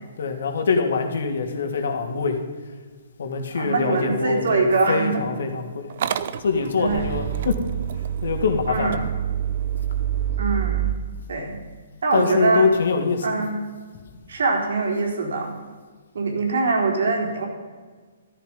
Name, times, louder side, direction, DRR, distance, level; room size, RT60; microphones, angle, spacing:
voice 1, 0.2-2.4 3.2-5.9 6.4-7.6 8.2-9.0 12.1-13.3, left 4 dB, 70° left, 5 dB, 2.8 m, -24 dB
voice 2, 3.5-5.2 6.8-7.1 8.7-9.0 10.4-10.9 11.3-11.5 12.0-12.7 13.2-13.5 14.3-15.5 16.1-17.4, right 3 dB, 75° right, 1 dB, 4.3 m, -23 dB
Motor vehicle (road) / Engine starting, 5.9-10.9, right 10 dB, 50° right, 0.8 m, -27 dB
14.5 x 13.5 x 5.5 m, 1.5 s
hypercardioid pair, 160°, 0 cm